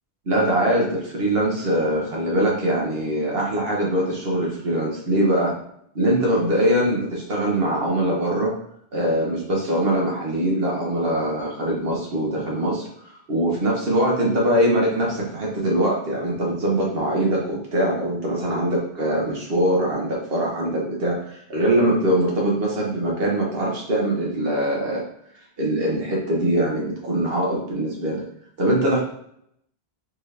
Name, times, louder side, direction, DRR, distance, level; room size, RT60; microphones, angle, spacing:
voice 1, 0.3-5.5 5.9-8.5 8.9-12.9 13.3-25.1 25.6-28.2 28.6-29.0, right 1 dB, 60° right, -2 dB, 1.3 m, -22 dB
4.4 x 2.8 x 3.2 m, 0.70 s
omnidirectional pair, 1.1 m